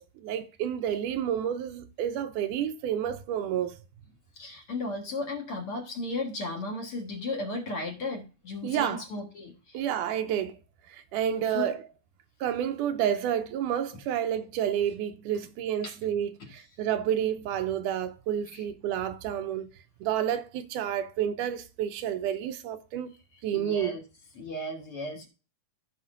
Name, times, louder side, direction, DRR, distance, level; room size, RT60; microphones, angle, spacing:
voice 1, 0.0-3.8 8.6-9.0 9.7-10.6 10.9-11.8 12.4-19.7 20.0-23.1 23.4-24.0, right 10 dB, 80° right, 2.1 m, -30 dB
voice 2, 4.4-9.8 11.5-11.7 15.8-16.0 16.4-16.5 18.5-18.6 23.5-24.0 24.4-25.3, left 2 dB, 50° left, 2.1 m, -35 dB
15.0 x 5.5 x 2.5 m
omnidirectional pair, 3.8 m